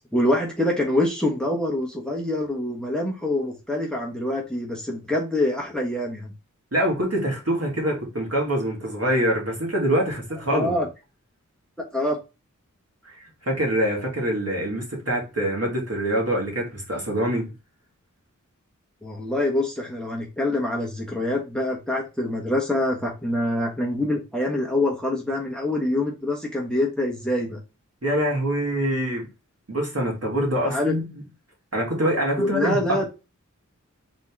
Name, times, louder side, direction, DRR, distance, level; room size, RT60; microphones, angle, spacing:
voice 1, 0.1-6.3 10.5-10.9 11.9-12.2 19.0-27.6 30.6-30.9 32.4-33.0, left 1 dB, ahead, 1.2 m, -25 dB
voice 2, 6.7-10.8 13.0-17.5 28.0-29.3 29.7-31.1 31.7-33.1, right 1 dB, 50° right, 2.0 m, -25 dB
4.2 x 3.0 x 3.4 m
wide cardioid pair, 40°, 32 cm